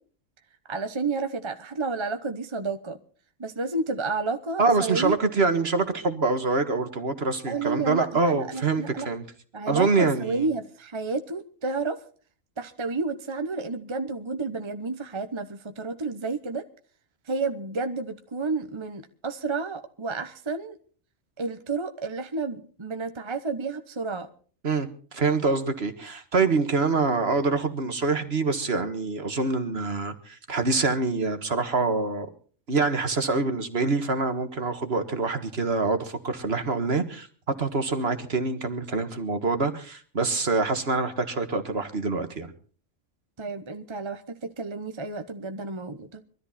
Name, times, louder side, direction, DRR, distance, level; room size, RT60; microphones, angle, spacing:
voice 1, 0.7-3.0 3.4-5.1 7.5-9.1 9.5-12.0 12.6-16.6 17.3-20.8 21.4-24.3 43.4-46.2, right 3 dB, 25° right, 7 dB, 1.0 m, -31 dB
voice 2, 4.6-9.2 9.7-10.5 24.6-32.3 32.7-37.3 37.6-42.5, right 3 dB, 50° right, 8 dB, 1.9 m, -25 dB
22.5 x 13.5 x 4.3 m, 0.43 s
omnidirectional pair, 1.3 m